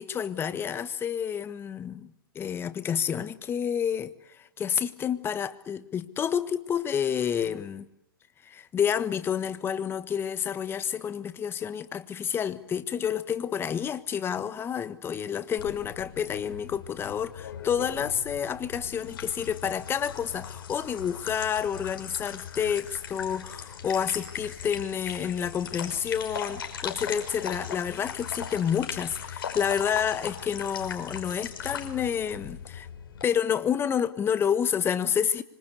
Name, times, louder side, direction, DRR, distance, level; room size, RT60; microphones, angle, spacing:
voice 1, 0.0-7.8 8.4-32.9 33.2-35.4, left 8 dB, 20° left, 1.4 m, -29 dB
sound 1, 15.6-33.2, left 7 dB, 65° left, 5.8 m, -39 dB
26.0 x 25.0 x 8.3 m
hypercardioid pair, 125°, 12 cm